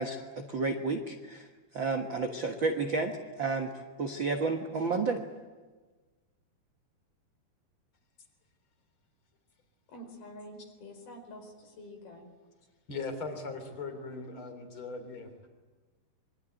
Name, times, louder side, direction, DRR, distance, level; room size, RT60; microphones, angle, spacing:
voice 1, 0.0-1.5 1.7-5.2, right 3 dB, 55° right, 4 dB, 1.4 m, -31 dB
voice 2, 9.9-12.3, left 1 dB, 75° left, 5 dB, 6.6 m, -47 dB
voice 3, 12.9-15.5, left 3 dB, 35° left, 8 dB, 4.1 m, -39 dB
26.5 x 24.0 x 9.2 m, 1.3 s
omnidirectional pair, 4.4 m